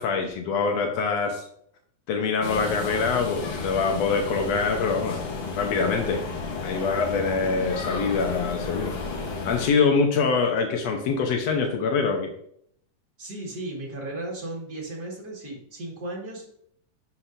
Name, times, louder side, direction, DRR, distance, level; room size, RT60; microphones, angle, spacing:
voice 1, 0.0-1.4 2.1-5.2 5.5-6.2 6.6-8.9 9.4-12.3, left 5 dB, 90° left, 3 dB, 1.4 m, -24 dB
sound 1, 2.4-9.7, left 3 dB, 65° left, 1.5 m, -33 dB
voice 2, 13.2-16.6, right 2 dB, 35° right, -3 dB, 1.8 m, -35 dB
11.5 x 6.3 x 2.6 m, 0.67 s
omnidirectional pair, 4.3 m